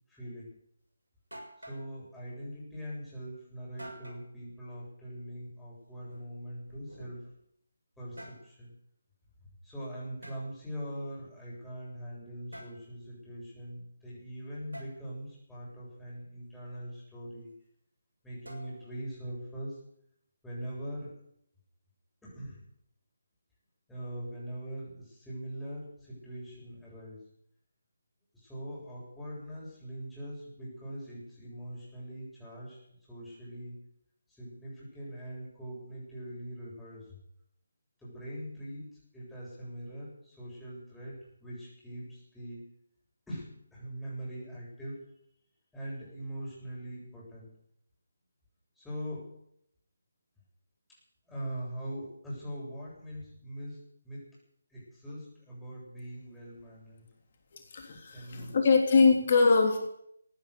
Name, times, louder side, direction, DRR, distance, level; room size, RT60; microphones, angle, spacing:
voice 1, 0.1-0.5 1.6-7.3 8.0-8.7 9.6-17.5 18.2-19.8 20.4-21.2 22.2-22.6 23.9-27.3 28.3-32.8 33.1-33.8 34.3-37.2 38.0-42.7 43.3-45.1 45.7-47.6 48.8-49.3 51.3-54.3 54.7-57.1 58.1-58.6 58.9-59.0, equal, 5° left, -7 dB, 7.7 m, -42 dB
sound 1, 0.8-0.9 1.3-1.9 3.8-4.3 5.9-7.4 7.9-8.5 10.2-10.4 12.5-12.8 14.7-15.0 18.4-19.0, right 1 dB, 80° right, 6.8 m, -48 dB
voice 2, 57.5-59.8, left 4 dB, 40° left, 3 dB, 3.3 m, -23 dB
16.0 x 10.5 x 8.3 m, 0.71 s
figure-of-eight pair, 155°, 0 cm